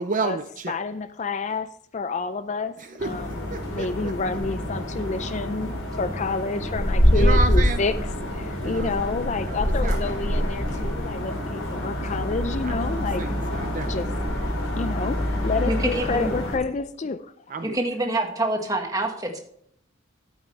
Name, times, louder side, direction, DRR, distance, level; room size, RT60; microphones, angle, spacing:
voice 1, 0.0-0.8 2.8-3.2 3.5-4.1 7.1-7.8 8.6-9.1 9.5-10.0 11.5-12.1 12.6-14.3 15.5-16.1 17.5-17.8, right 3 dB, 40° right, 9 dB, 0.5 m, -32 dB
voice 2, 0.7-1.7 1.9-2.7 3.0-7.9 8.3-13.2 13.9-14.1 14.8-17.3, left 3 dB, 35° left, 11 dB, 0.4 m, -29 dB
sound 1, 3.0-16.6, equal, 75° left, 4.2 m, -26 dB
voice 3, 15.7-16.3 17.6-19.4, right 1 dB, 15° right, 3 dB, 1.6 m, -26 dB
12.0 x 9.0 x 3.3 m, 0.67 s
head